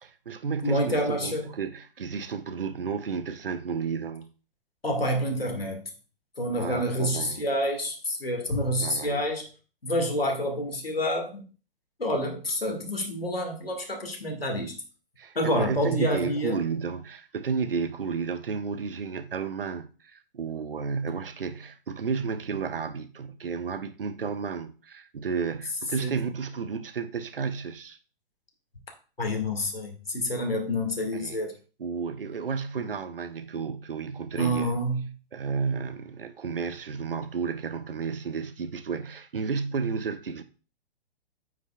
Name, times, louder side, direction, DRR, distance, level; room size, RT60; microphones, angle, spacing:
voice 1, 0.0-4.3 6.6-7.4 8.8-9.2 15.2-28.0 31.2-31.4 31.8-34.7 35.3-40.4, right 5 dB, 75° right, 0.7 m, -32 dB
voice 2, 0.6-1.5 4.8-5.8 6.4-9.5 9.8-11.5 12.0-14.8 15.4-16.6 26.0-26.2 29.2-31.5 34.4-35.1, equal, 85° left, 2.0 m, -28 dB
9.1 x 5.9 x 2.3 m
figure-of-eight pair, 120°, 29 cm